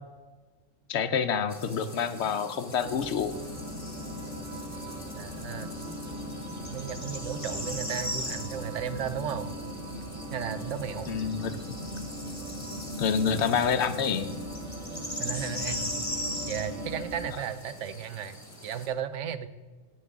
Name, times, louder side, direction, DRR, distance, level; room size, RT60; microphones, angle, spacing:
voice 1, 0.9-3.3 11.1-11.6 13.0-14.3, left 6 dB, 70° left, 11 dB, 0.8 m, -27 dB
sound 1, 1.5-18.9, left 1 dB, 15° left, 1.5 m, -40 dB
airplane-interior-volo-inflight medium, 2.8-17.3, left 1 dB, 5° right, 1.5 m, -41 dB
sound 2, 3.3-17.0, right 1 dB, 45° right, 1.5 m, -42 dB
voice 2, 5.2-5.7 6.7-9.5 10.3-11.1 15.2-16.0 16.5-19.5, right 8 dB, 75° right, 12 dB, 0.9 m, -35 dB
9.4 x 9.3 x 3.6 m, 1.4 s
omnidirectional pair, 1.3 m